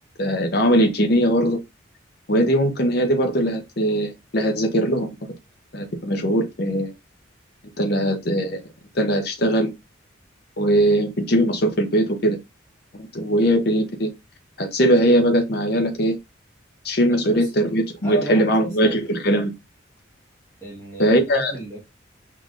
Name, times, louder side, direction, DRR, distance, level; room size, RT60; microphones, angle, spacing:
voice 1, 0.2-1.6 2.3-5.1 5.7-6.9 7.8-8.6 8.9-9.7 10.6-12.4 12.9-14.1 14.6-16.2 16.8-19.5 21.0-21.5, equal, 55° left, 0.8 m, -20 dB
voice 2, 17.1-17.5 18.0-19.0 20.6-21.8, right 1 dB, 15° left, 1.6 m, -33 dB
4.7 x 3.8 x 2.5 m
head